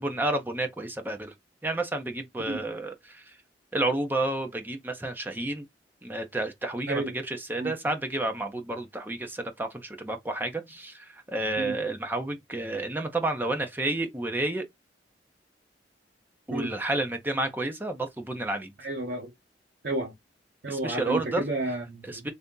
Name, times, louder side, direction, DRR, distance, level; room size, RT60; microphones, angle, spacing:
voice 1, 0.0-1.3 1.6-3.2 3.7-5.6 6.0-14.6 16.5-18.7 20.7-21.4 22.1-22.3, right 2 dB, 10° right, 0.7 m, -30 dB
voice 2, 18.8-19.3 19.8-20.1 20.6-22.3, right 2 dB, 65° right, 1.0 m, -31 dB
3.5 x 2.7 x 3.7 m
head